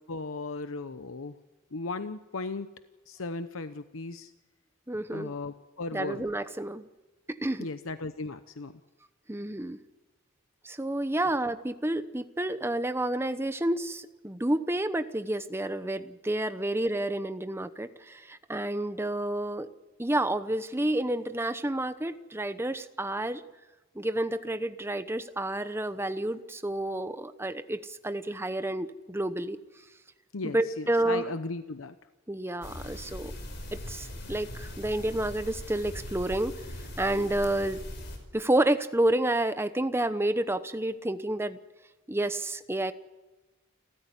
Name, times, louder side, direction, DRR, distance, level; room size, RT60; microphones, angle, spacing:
voice 1, 0.1-1.4 1.7-2.7 3.1-4.3 5.1-6.3 7.6-8.7 30.3-31.9, left 3 dB, 85° left, 10 dB, 0.9 m, -36 dB
voice 2, 4.9-5.3 5.9-6.9 7.3-7.7 9.3-9.8 10.6-19.7 20.0-23.4 23.9-29.6 30.4-31.3 32.3-33.3 33.7-36.5 37.0-37.8 38.3-41.6 42.1-42.9, right 1 dB, 10° right, 11 dB, 0.9 m, -30 dB
sound 1, 32.6-38.2, left 1 dB, 60° left, 5.3 m, -40 dB
29.5 x 13.5 x 9.8 m, 1.2 s
head